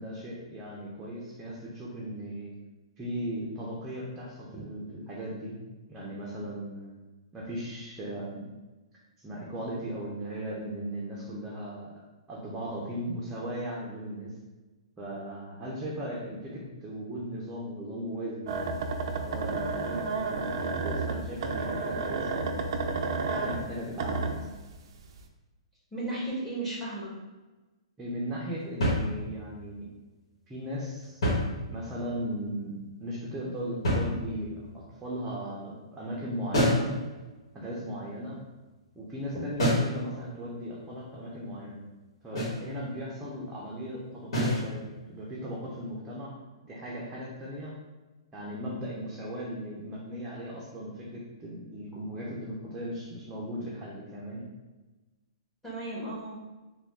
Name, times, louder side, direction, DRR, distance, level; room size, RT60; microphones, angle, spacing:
voice 1, 0.0-2.5 3.0-5.6 5.9-6.9 7.3-8.5 9.2-11.9 12.3-14.3 15.0-18.6 19.1-22.9 23.3-24.5 28.0-29.9 30.5-31.2 31.7-36.9 37.5-38.4 38.9-41.8 42.2-46.3 46.6-47.7 48.3-54.4, equal, 10° right, -6 dB, 0.7 m, -37 dB
sound 1, 18.5-24.8 25.2-25.3, right 3 dB, 55° right, 0.4 m, -31 dB
voice 2, 25.9-27.1 39.3-39.4 55.6-56.4, right 2 dB, 5° left, -7 dB, 1.2 m, -35 dB
sound 2, 28.8-29.6 31.0-32.1 33.8-34.6 36.5-37.0 39.6-40.0 42.4-42.7 44.3-44.7, left 1 dB, 65° left, 1.4 m, -27 dB
3.5 x 2.3 x 3.5 m, 1.2 s
hypercardioid pair, 140°, 3 cm